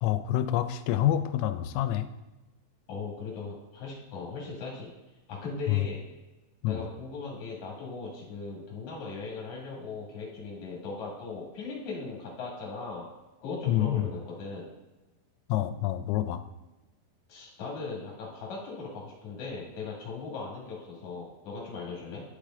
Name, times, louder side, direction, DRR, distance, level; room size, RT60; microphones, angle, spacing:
voice 1, 0.0-2.1 5.7-5.9 6.6-6.9 13.7-14.1 15.5-16.4, left 12 dB, 85° left, 10 dB, 3.2 m, -27 dB
voice 2, 2.9-4.9 5.3-6.0 6.7-13.1 13.4-14.7 17.3-22.2, left 4 dB, 50° left, -4 dB, 2.5 m, -38 dB
12.0 x 5.0 x 3.8 m, 1.1 s
omnidirectional pair, 5.8 m